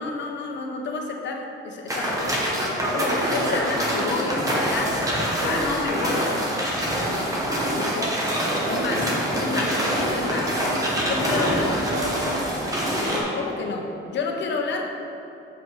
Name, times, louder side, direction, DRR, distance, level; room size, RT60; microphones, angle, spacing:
voice 1, 0.0-4.9 5.2-6.2 7.0-7.3 7.7-8.3 8.7-9.0 9.4-9.7 10.1-10.5 11.0-11.7 13.0-14.9, left 4 dB, 60° left, 2 dB, 0.9 m, -30 dB
sound 1, 1.9-13.2, equal, 15° right, 1.1 m, -25 dB
voice 2, 2.7-4.1 4.4-6.5 8.2-9.0 9.3-10.2 10.9-12.2, right 1 dB, 80° right, -3 dB, 1.7 m, -33 dB
7.7 x 5.1 x 4.8 m, 2.8 s
wide cardioid pair, 175°, 21 cm